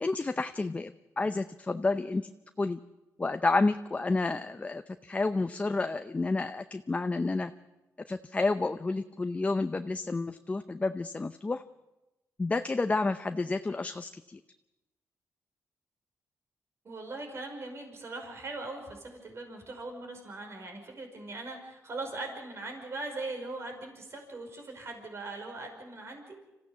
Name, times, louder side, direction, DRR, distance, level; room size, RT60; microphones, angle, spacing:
voice 1, 0.0-2.3 2.6-2.8 3.2-7.5 8.1-11.6 12.4-14.4, left 3 dB, 25° left, 9 dB, 0.6 m, -30 dB
voice 2, 16.8-26.4, right 2 dB, 50° right, 3 dB, 5.3 m, -40 dB
26.0 x 15.0 x 7.0 m, 1.0 s
cardioid pair, 85°, 6 cm